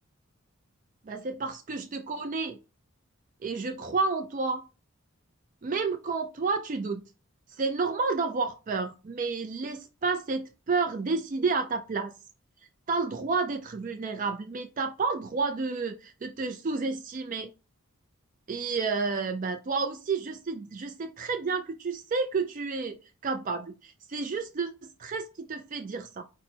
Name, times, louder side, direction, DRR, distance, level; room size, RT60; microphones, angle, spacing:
voice 1, 1.1-2.6 3.4-4.6 5.6-7.1 7.5-12.1 12.9-17.5 18.5-23.0 23.2-26.2, right 4 dB, 35° right, 0.4 m, -30 dB
5.2 x 2.1 x 4.3 m
head